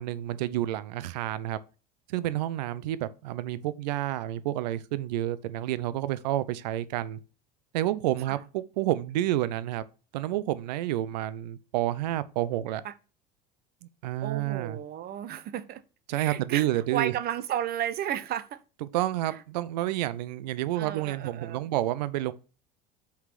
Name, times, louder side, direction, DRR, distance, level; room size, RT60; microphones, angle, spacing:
voice 1, 0.0-1.6 2.1-7.2 7.7-9.8 10.1-12.8 13.8-14.8 16.1-17.1 18.8-22.3, right 14 dB, 85° right, 0.7 m, -29 dB
voice 2, 14.2-15.8 16.1-18.6 19.3-19.4 20.8-21.6, right 10 dB, 50° right, 1.0 m, -33 dB
5.9 x 4.9 x 5.8 m
supercardioid pair, 100°, 21 cm